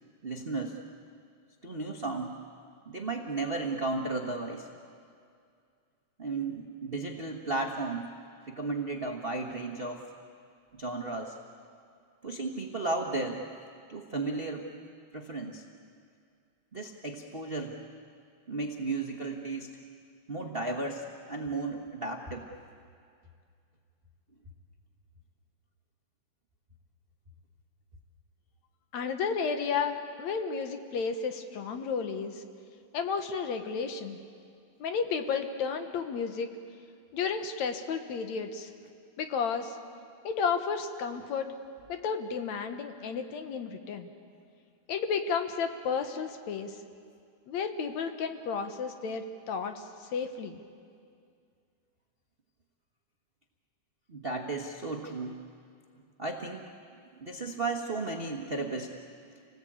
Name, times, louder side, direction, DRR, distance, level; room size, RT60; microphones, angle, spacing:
voice 1, 0.2-0.8 1.6-2.3 2.9-4.7 6.2-8.1 8.5-10.0 10.7-11.3 12.2-13.4 13.9-14.7 15.1-15.6 16.7-17.8 18.5-19.7 20.3-22.5 54.1-55.3 56.2-56.7 57.2-58.9, right 3 dB, 45° right, 1 dB, 0.7 m, -34 dB
voice 2, 28.9-32.4 32.9-34.2 34.8-36.5 37.1-38.7 39.2-39.8 40.2-41.5 41.9-44.1 44.9-46.8 47.5-50.6, left 5 dB, 70° left, 7 dB, 2.5 m, -32 dB
28.0 x 19.0 x 8.7 m, 2.3 s
omnidirectional pair, 3.4 m